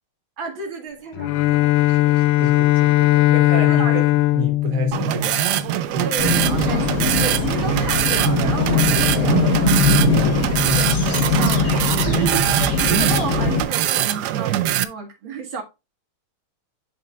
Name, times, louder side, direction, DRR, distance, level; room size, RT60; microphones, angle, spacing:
voice 1, 0.4-2.5 3.7-4.0 6.0-9.9 10.7-11.8 12.8-15.6, right 4 dB, 65° right, 2.3 m, -32 dB
Bowed string instrument, 1.1-5.8, left 17 dB, 75° left, 1.3 m, -18 dB
voice 2, 2.4-4.0 4.3-5.4 5.9-6.1 10.5-11.0, equal, 45° right, 1.3 m, -28 dB
sound 1, 4.9-14.8, right 13 dB, 85° right, 0.9 m, -22 dB
sound 2, 6.2-13.6, left 4 dB, 50° left, 1.4 m, -21 dB
10.0 x 3.9 x 2.4 m
omnidirectional pair, 2.3 m